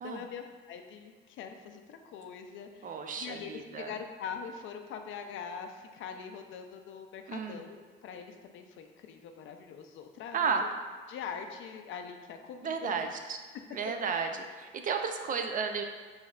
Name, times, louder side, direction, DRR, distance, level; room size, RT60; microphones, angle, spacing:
voice 1, 0.0-10.5 11.1-13.1, left 6 dB, 80° left, 6 dB, 0.4 m, -43 dB
voice 2, 2.8-3.9 7.3-7.6 10.3-10.6 12.6-13.4 13.7-15.8, right 5 dB, 45° right, 5 dB, 0.4 m, -33 dB
5.5 x 2.6 x 2.3 m, 1.4 s
cardioid pair, 90°, 20 cm